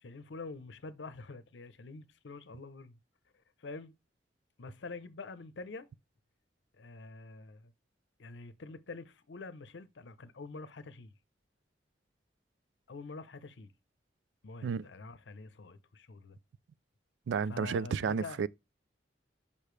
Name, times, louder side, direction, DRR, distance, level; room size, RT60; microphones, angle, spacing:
voice 1, 0.0-3.0 3.6-3.9 4.6-5.9 6.8-7.7 8.2-11.1 12.9-13.7 14.4-16.4 17.4-18.4, left 3 dB, 90° left, 0.6 m, -46 dB
voice 2, 17.3-18.5, right 6 dB, 85° right, 0.3 m, -32 dB
6.7 x 5.5 x 3.2 m
head